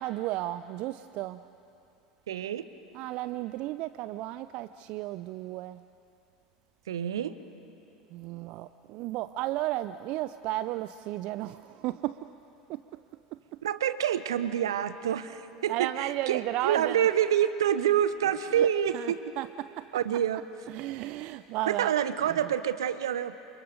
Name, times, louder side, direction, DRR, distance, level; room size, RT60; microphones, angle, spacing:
voice 1, 0.0-1.4 2.9-5.8 8.1-12.2 12.7-12.8 15.7-17.0 18.6-18.7 18.9-19.8 20.7-21.9, right 15 dB, 50° right, 14 dB, 0.5 m, -33 dB
voice 2, 2.3-2.7 6.9-7.4 13.6-19.2 19.9-20.4 21.6-23.3, right 10 dB, 70° right, 12 dB, 1.0 m, -27 dB
28.5 x 27.5 x 5.1 m, 2.8 s
figure-of-eight pair, 75°, 2 cm